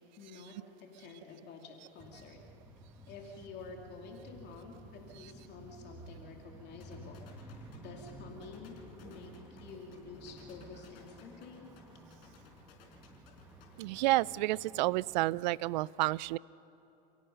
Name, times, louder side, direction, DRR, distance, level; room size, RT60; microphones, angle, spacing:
voice 1, 0.2-0.5 1.0-2.4 3.1-11.7, left 4 dB, 30° left, 1 dB, 2.8 m, -50 dB
sound 1, 2.0-15.4, right 1 dB, 5° right, 1.3 m, -53 dB
sound 2, 6.8-14.1, left 8 dB, 60° left, 4.8 m, -60 dB
voice 2, 13.8-16.4, right 19 dB, 45° right, 23 dB, 0.4 m, -30 dB
30.0 x 16.5 x 5.6 m, 3.0 s
hypercardioid pair, 130°, 33 cm